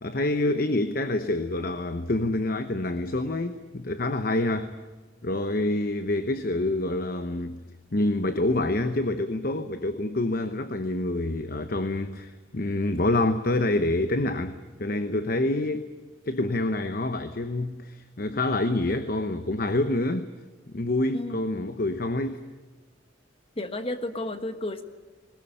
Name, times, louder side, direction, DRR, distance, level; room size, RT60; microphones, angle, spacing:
voice 1, 0.0-4.7 5.2-7.6 7.9-15.9 16.2-20.3 20.7-22.4, left 2 dB, 50° left, 0.9 m, -27 dB
voice 2, 23.6-24.8, left 1 dB, 30° left, 1.4 m, -32 dB
20.5 x 19.0 x 10.0 m
head